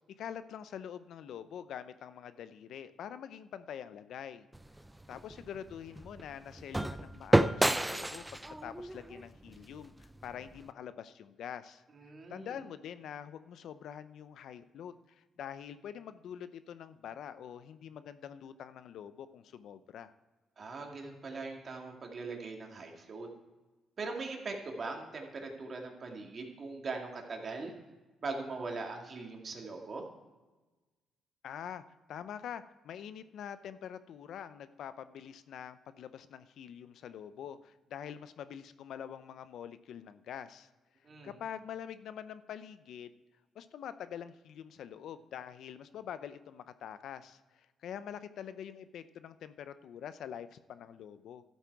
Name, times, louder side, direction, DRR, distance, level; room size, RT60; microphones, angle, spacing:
voice 1, 0.2-4.5 5.1-11.8 12.3-20.1 31.4-40.7 41.2-43.2 43.5-51.4, left 9 dB, 70° left, 13 dB, 0.6 m, -45 dB
sound 1, 4.5-10.7, right 1 dB, 10° right, 0.5 m, -32 dB
voice 2, 11.9-12.5 20.6-23.3 24.0-27.7 28.2-30.1 41.0-41.3, right 3 dB, 45° right, 1 dB, 2.2 m, -41 dB
12.5 x 8.1 x 4.7 m, 1.2 s
cardioid pair, 90°, 0 cm